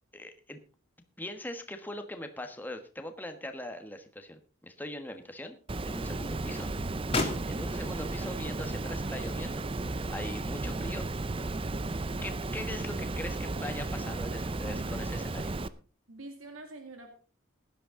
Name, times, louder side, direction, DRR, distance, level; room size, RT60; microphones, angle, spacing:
voice 1, 0.1-0.6 1.2-5.6 5.8-6.7 7.5-11.0 12.2-15.5, left 1 dB, 10° left, 6 dB, 1.3 m, -41 dB
sound 1, 4.6-5.8 6.2-13.5, left 3 dB, 25° left, 2.3 m, -39 dB
Water, 5.7-15.7, right 2 dB, 25° right, 0.5 m, -34 dB
voice 2, 7.3-7.8 16.1-17.2, right 2 dB, 80° right, 4 dB, 2.1 m, -47 dB
16.5 x 11.0 x 3.8 m, 0.37 s
head